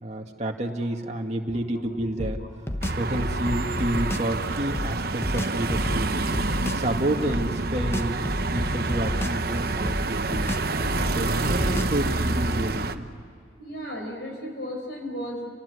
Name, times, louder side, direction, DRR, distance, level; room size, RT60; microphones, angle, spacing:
voice 1, 0.0-2.4 3.0-6.1 6.6-8.2 8.5-10.5 11.0-13.1, right 1 dB, 35° right, 1 dB, 2.1 m, -29 dB
sound 1, 2.2-4.3 4.7-6.9 7.3-9.5 9.8-12.1, left 1 dB, 15° left, 0.9 m, -31 dB
sound 2, 2.8-13.0, right 3 dB, 50° right, 1.0 m, -28 dB
voice 2, 13.6-15.5, equal, 60° left, 2 dB, 4.6 m, -34 dB
29.0 x 19.5 x 9.7 m, 2.5 s
head